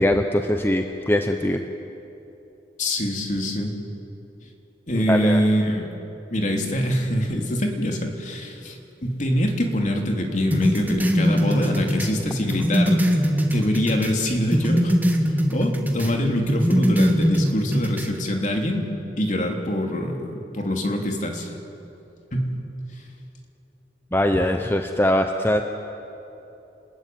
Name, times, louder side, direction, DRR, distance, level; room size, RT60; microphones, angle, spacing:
voice 1, 0.0-1.6 5.0-5.4 24.1-25.6, left 1 dB, 15° left, 5 dB, 0.9 m, -21 dB
voice 2, 2.8-3.7 4.9-5.9 6.3-13.0 13.5-15.0 15.3-18.8 19.2-21.5 22.3-22.5, equal, 45° left, 2 dB, 3.2 m, -24 dB
sound 1, 10.5-14.2 14.5-16.2 16.5-18.1, equal, 10° right, 2.0 m, -22 dB
30.0 x 20.5 x 9.4 m, 3.0 s
head